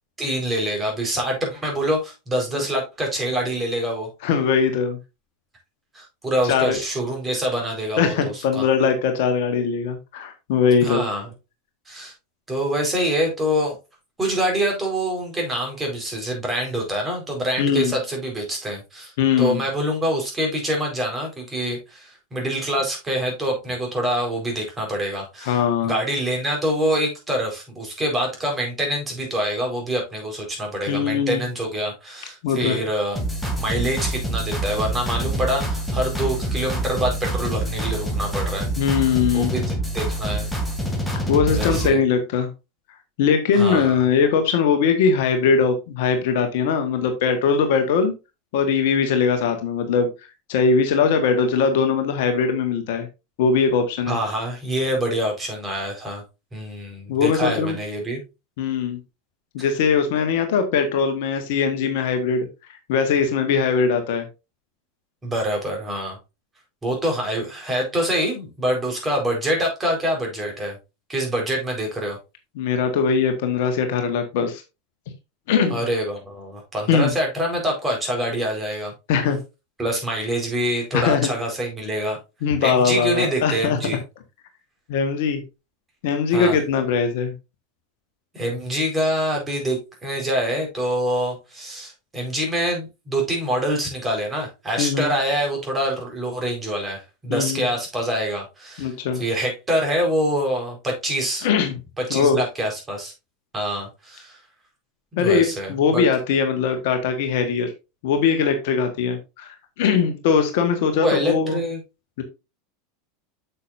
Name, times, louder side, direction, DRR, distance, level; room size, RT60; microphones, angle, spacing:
voice 1, 0.2-4.1 5.9-8.6 10.8-11.3 11.9-12.1 12.5-13.8 14.2-19.1 19.4-33.2 33.6-38.7 39.3-40.5 41.5-42.0 43.5-44.0 54.1-56.2 56.5-58.2 59.6-59.7 65.2-66.2 66.8-70.8 71.1-72.2 75.7-78.9 79.8-82.2 82.6-84.0 86.3-86.6 88.3-101.5 102.0-103.1 103.5-104.4 105.1-106.0 111.0-111.8, equal, 15° right, 0 dB, 4.5 m, -25 dB
voice 2, 4.2-5.0 6.4-6.8 8.0-11.0 17.6-17.9 19.2-19.6 25.4-25.9 30.9-31.4 32.4-32.8 38.8-39.5 41.3-42.5 43.2-48.1 48.5-50.1 50.5-53.1 53.4-54.2 57.1-57.8 58.6-59.0 59.5-62.5 62.9-64.3 72.6-74.6 75.5-75.8 76.9-77.1 79.1-79.4 80.9-81.3 82.4-84.0 84.9-85.4 86.0-87.3 94.8-95.1 97.3-97.7 98.8-99.2 101.4-101.7 102.1-102.4 105.2-107.7 108.0-109.5 109.8-111.6 112.2-112.3, left 6 dB, 60° left, 6 dB, 1.4 m, -20 dB
sound 1, 33.2-41.9, right 1 dB, ahead, 2.4 m, -26 dB
8.3 x 6.9 x 2.6 m, 0.26 s
figure-of-eight pair, 85°, 0 cm